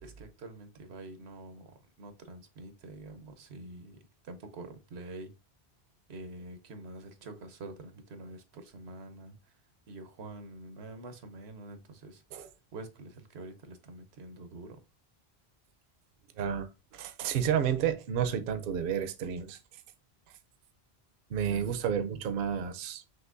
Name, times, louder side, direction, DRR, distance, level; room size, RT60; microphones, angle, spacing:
voice 1, 0.0-5.3 6.1-9.6 9.9-14.8 21.4-21.8, right 2 dB, 90° right, 1.0 m, -46 dB
voice 2, 16.4-16.7 16.9-19.6 21.3-23.0, right 8 dB, 65° right, 0.7 m, -31 dB
5.9 x 2.9 x 2.5 m
omnidirectional pair, 1.1 m